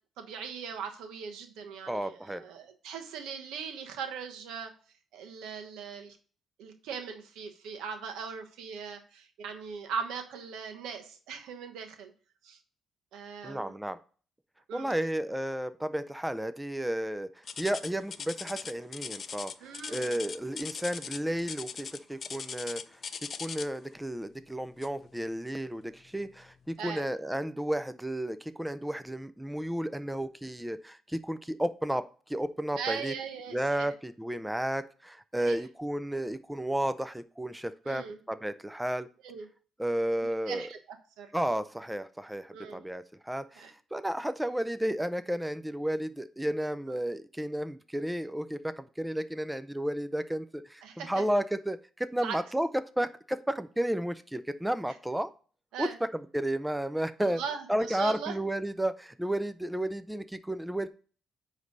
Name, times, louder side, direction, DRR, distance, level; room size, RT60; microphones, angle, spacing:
voice 1, 0.2-4.7 5.1-6.2 6.6-12.1 12.4-12.6 13.1-13.7 14.7-14.9 19.6-20.1 26.8-27.1 32.8-33.9 35.4-35.6 37.8-38.2 39.2-39.5 40.2-40.8 41.2-41.3 42.5-42.8 43.6-43.7 50.8-51.2 52.2-52.4 55.7-56.0 57.2-58.4, right 6 dB, 90° right, 5 dB, 1.1 m, -39 dB
voice 2, 1.9-2.4 13.4-14.0 14.7-19.5 19.9-23.0 23.4-33.1 33.5-39.1 39.8-40.7 41.3-52.7 53.0-55.3 55.8-57.4 57.7-60.9, right 1 dB, 5° right, 12 dB, 0.4 m, -32 dB
sound 1, 17.5-23.9 24.8-25.1 25.6-25.7 26.4-26.5, left 6 dB, 50° left, 0.5 m, -40 dB
9.4 x 3.2 x 5.2 m, 0.41 s
cardioid pair, 90°, 0 cm